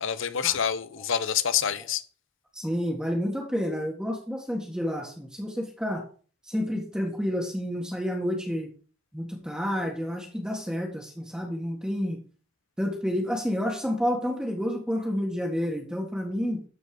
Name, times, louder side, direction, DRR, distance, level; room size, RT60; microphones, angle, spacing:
voice 1, 0.0-2.0, left 8 dB, 60° left, 0.7 m, -27 dB
voice 2, 2.5-6.1 6.4-8.7 9.1-12.2 12.8-16.6, equal, 5° right, 1.7 m, -29 dB
13.0 x 4.5 x 4.9 m
head